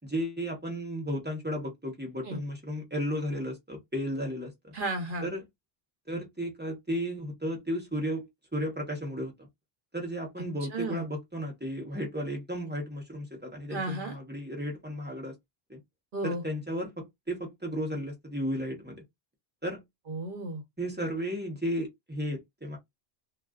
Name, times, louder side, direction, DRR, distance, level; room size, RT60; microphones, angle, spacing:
voice 1, 0.1-4.7 5.2-5.4 6.1-9.5 9.9-15.3 15.7-15.8 16.2-19.0 19.6-19.8 20.8-22.8, equal, 10° right, 0.8 m, -34 dB
voice 2, 4.7-5.3 10.7-11.0 13.7-14.2 16.1-16.4 20.1-20.6, right 2 dB, 60° right, 1.0 m, -33 dB
2.4 x 2.3 x 2.3 m
omnidirectional pair, 1.1 m